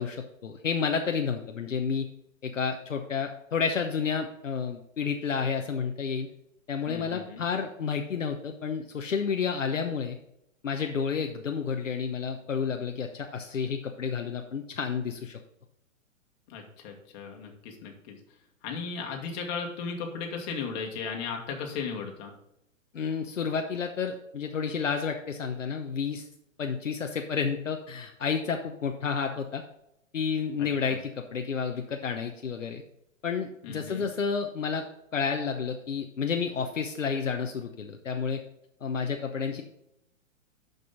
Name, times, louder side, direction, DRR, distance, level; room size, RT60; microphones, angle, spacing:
voice 1, 0.0-2.1 2.4-6.3 6.7-10.2 10.6-15.4 22.9-26.3 26.6-29.6 30.1-32.8 33.2-34.8 35.1-38.4 38.8-39.6, left 6 dB, 70° left, 4 dB, 1.0 m, -30 dB
voice 2, 6.9-7.4 16.5-18.2 18.6-22.3 30.9-31.0 33.6-34.0, left 5 dB, 30° left, 2 dB, 2.0 m, -36 dB
12.0 x 5.3 x 3.9 m, 0.79 s
figure-of-eight pair, 115°, 39 cm